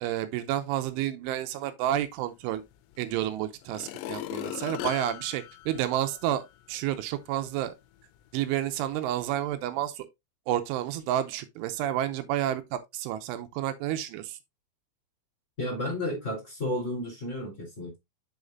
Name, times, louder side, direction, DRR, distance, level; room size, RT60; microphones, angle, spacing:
voice 1, 0.0-2.6 3.0-7.7 8.3-10.1 10.5-14.4, right 12 dB, 85° right, 3.1 m, -30 dB
sound 1, 2.9-3.0 3.6-6.5 7.0-7.1, left 14 dB, 80° left, 2.6 m, -38 dB
voice 2, 15.6-18.0, left 1 dB, 15° left, 3.7 m, -32 dB
8.3 x 6.5 x 2.5 m
omnidirectional pair, 5.5 m